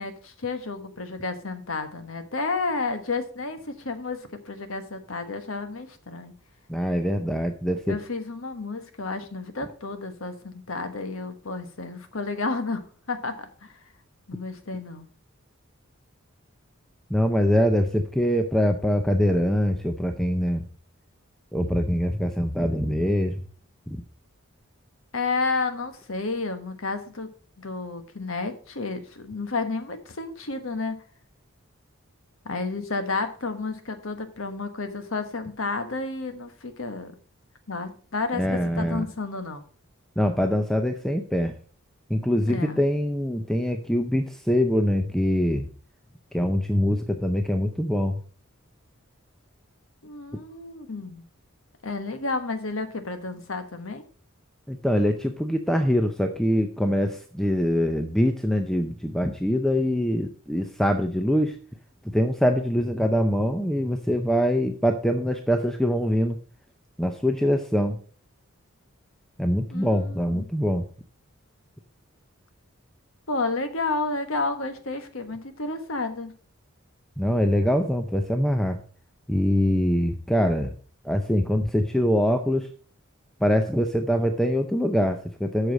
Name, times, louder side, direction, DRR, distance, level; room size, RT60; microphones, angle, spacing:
voice 1, 0.0-6.3 7.9-13.7 14.3-15.1 25.1-27.3 27.6-31.0 32.4-37.1 37.7-39.7 42.4-42.8 50.0-51.2 51.8-54.0 69.7-70.4 73.3-76.4, left 3 dB, 75° left, 8 dB, 1.3 m, -31 dB
voice 2, 6.7-8.0 17.1-20.6 21.5-23.4 23.9-24.0 38.3-39.0 40.2-41.5 42.1-45.7 46.3-48.2 54.7-61.6 62.0-66.4 67.0-68.0 69.4-70.8 77.2-78.8 79.3-80.7 81.0-82.7 83.4-85.7, equal, ahead, 5 dB, 0.6 m, -23 dB
7.9 x 6.6 x 5.2 m, 0.43 s
head